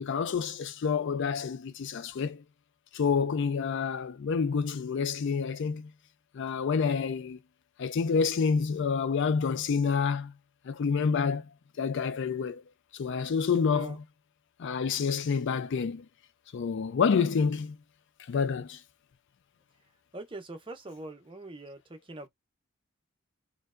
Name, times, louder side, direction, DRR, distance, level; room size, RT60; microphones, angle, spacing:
voice 1, 0.0-2.4 2.9-5.9 6.3-7.4 7.8-10.3 10.6-11.5 11.8-12.6 12.9-14.0 14.6-16.1 16.5-17.8 18.3-18.8, left 5 dB, 60° left, 0.4 m, -28 dB
voice 2, 20.1-22.3, right 2 dB, 25° right, 0.7 m, -43 dB
4.4 x 2.3 x 2.4 m
head